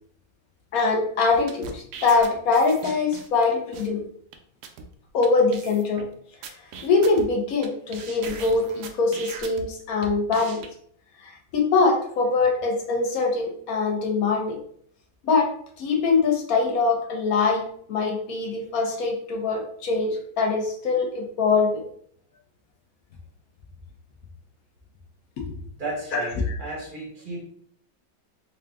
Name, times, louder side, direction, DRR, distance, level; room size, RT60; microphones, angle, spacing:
voice 1, 0.7-4.0 5.1-6.1 6.8-10.6 11.2-14.6 15.2-15.5 15.8-21.8 26.1-26.6, left 4 dB, 60° left, 1 dB, 1.0 m, -23 dB
sound 1, 1.3-3.4 3.7-3.9 4.3-4.4 4.6-4.8 5.2-5.3 5.5-6.0 6.4-7.7 7.9-9.6 10.0-10.7, right 5 dB, 75° right, 0.9 m, -39 dB
voice 2, 25.8-27.5, right 2 dB, 40° right, -4 dB, 0.8 m, -34 dB
3.7 x 2.4 x 3.4 m, 0.62 s
omnidirectional pair, 2.1 m